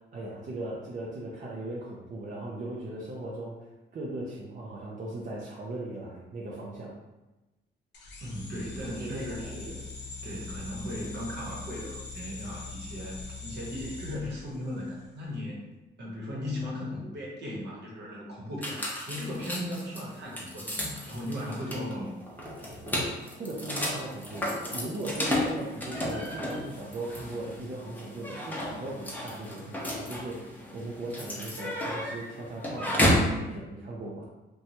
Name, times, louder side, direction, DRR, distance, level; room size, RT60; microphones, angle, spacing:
voice 1, 0.0-6.9 8.9-9.8 23.4-34.3, right 2 dB, 40° right, -5 dB, 0.5 m, -38 dB
sound 1, 7.9-15.1, left 4 dB, 60° left, 0.6 m, -42 dB
voice 2, 8.2-9.8 10.2-15.6 16.0-20.7 21.1-22.1, left 1 dB, 60° right, -4 dB, 1.0 m, -37 dB
sound 2, 18.6-33.4, left 1 dB, 10° left, 0.7 m, -32 dB
2.9 x 2.2 x 2.7 m, 1.1 s
cardioid pair, 90°, 20 cm